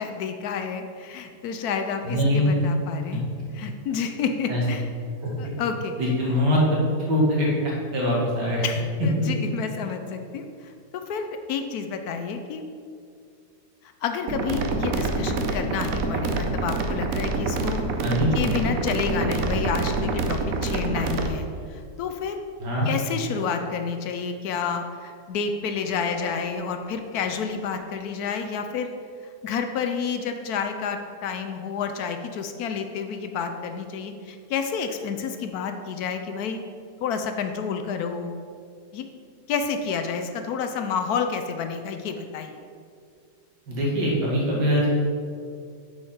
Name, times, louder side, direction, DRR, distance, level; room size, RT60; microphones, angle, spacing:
voice 1, 0.0-3.2 3.6-4.9 5.4-5.9 8.6-12.6 14.0-17.8 18.3-22.4 22.8-28.9 29.4-36.6 37.0-38.3 38.9-39.0 39.5-42.6, left 6 dB, 70° left, 6 dB, 1.0 m, -29 dB
voice 2, 2.0-2.5 4.5-4.6 5.2-5.3 6.0-6.8 7.1-7.5 7.9-8.6 18.0-18.3 22.6-22.9 43.7-45.0, equal, 80° right, -4 dB, 2.4 m, -22 dB
sound 1, 14.3-21.3, right 3 dB, 65° right, 1.0 m, -26 dB
7.2 x 4.8 x 5.6 m, 2.3 s
omnidirectional pair, 1.8 m